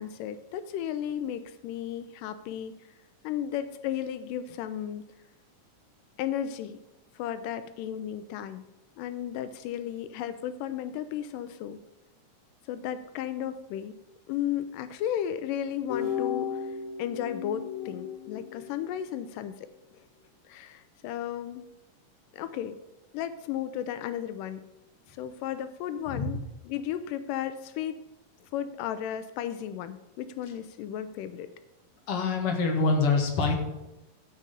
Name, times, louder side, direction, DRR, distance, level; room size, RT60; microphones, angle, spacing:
voice 1, 0.0-2.8 3.2-5.0 6.2-6.8 7.2-8.7 9.0-11.8 12.7-13.9 14.3-19.7 20.5-21.7 22.3-22.8 23.1-24.6 25.1-28.0 28.5-31.5, left 10 dB, 85° left, 11 dB, 2.2 m, -34 dB
sound 1, 15.9-19.1, left 8 dB, 70° left, 1.3 m, -34 dB
voice 2, 32.1-33.5, left 3 dB, 50° left, 1 dB, 2.4 m, -25 dB
14.0 x 4.9 x 6.7 m, 0.96 s
omnidirectional pair, 3.7 m